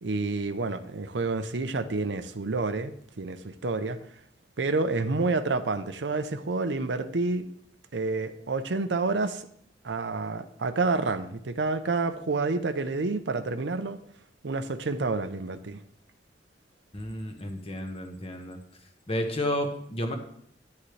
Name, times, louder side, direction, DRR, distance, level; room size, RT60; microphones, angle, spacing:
voice 1, 0.0-2.9 3.2-4.0 4.6-7.5 7.9-9.4 9.8-14.0 14.4-15.8, right 3 dB, 85° right, 0.7 m, -29 dB
voice 2, 16.9-18.6 19.1-20.2, left 1 dB, 35° left, 1.2 m, -31 dB
10.5 x 8.6 x 3.3 m
head